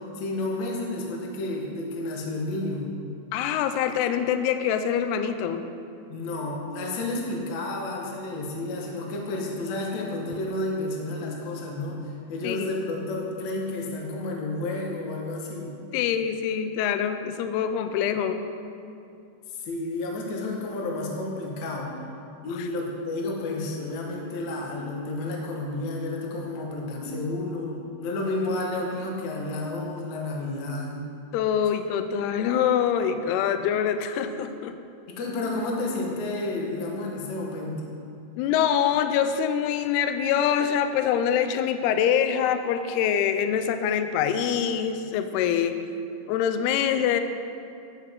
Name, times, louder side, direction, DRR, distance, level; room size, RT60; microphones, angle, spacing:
voice 1, 0.0-2.9 6.1-15.8 19.5-21.9 22.4-31.1 35.1-37.9, left 2 dB, 65° left, -1 dB, 1.8 m, -31 dB
voice 2, 3.3-5.7 12.4-12.6 15.9-18.4 22.5-22.7 31.3-34.8 38.4-45.8 46.3-47.2, left 8 dB, 85° left, 9 dB, 2.3 m, -25 dB
11.0 x 9.6 x 3.7 m, 2.5 s
omnidirectional pair, 5.1 m